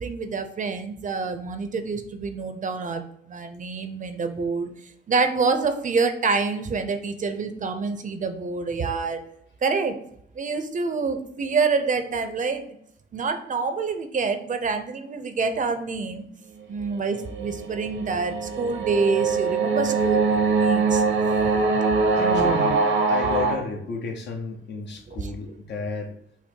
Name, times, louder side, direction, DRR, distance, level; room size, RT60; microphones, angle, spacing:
voice 1, 0.0-3.0 3.3-4.7 5.1-9.2 9.6-9.9 10.3-12.8 13.1-16.3 16.7-21.0 21.6-21.7 22.1-22.6 25.1-25.3, right 4 dB, 40° right, 8 dB, 0.6 m, -27 dB
sound 1, 16.9-23.5, right 4 dB, 85° right, 1.0 m, -23 dB
voice 2, 22.1-26.1, left 4 dB, 60° left, 3 dB, 1.0 m, -32 dB
5.7 x 2.0 x 4.4 m, 0.69 s
cardioid pair, 90°, 20 cm